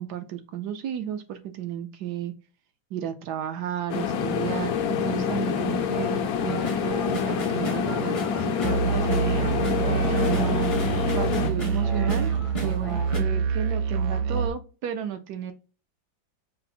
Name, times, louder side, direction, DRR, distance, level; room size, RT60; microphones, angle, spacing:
voice 1, 0.0-2.3 2.9-9.4 9.9-12.3 12.6-15.5, right 9 dB, 70° right, 1.0 m, -33 dB
sound 1, 3.9-11.5, left 7 dB, 70° left, 0.9 m, -27 dB
sound 2, 6.5-13.2, right 1 dB, 35° left, 0.5 m, -34 dB
Musical instrument, 8.6-14.5, right 6 dB, 90° right, 1.5 m, -26 dB
5.4 x 2.0 x 4.1 m
omnidirectional pair, 2.1 m